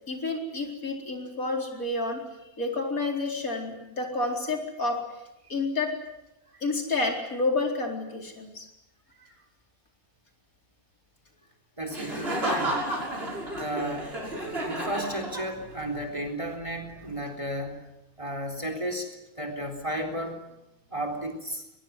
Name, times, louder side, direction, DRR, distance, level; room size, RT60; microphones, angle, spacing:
voice 1, 0.1-2.2 2.6-5.0 5.5-5.9 6.6-8.7, left 3 dB, 75° left, 2 dB, 4.8 m, -29 dB
voice 2, 11.8-12.9 13.5-14.1 14.6-17.9 18.2-19.1 19.4-20.4 20.9-21.6, right 1 dB, 20° right, 6 dB, 4.0 m, -33 dB
Laughter, 11.9-15.8, right 1 dB, 40° right, 6.9 m, -32 dB
23.0 x 21.0 x 9.5 m, 0.90 s
omnidirectional pair, 1.5 m